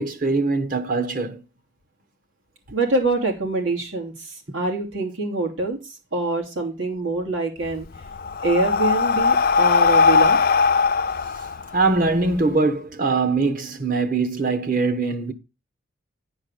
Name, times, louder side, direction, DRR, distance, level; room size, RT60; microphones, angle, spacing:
voice 1, 0.0-1.4 11.3-15.3, right 3 dB, 45° right, 1.2 m, -22 dB
voice 2, 2.7-5.8 6.1-7.9 8.4-10.4, right 2 dB, 85° right, 3.3 m, -25 dB
Breathing, 7.6-12.4, left 5 dB, 50° left, 0.5 m, -19 dB
10.0 x 4.7 x 6.7 m
head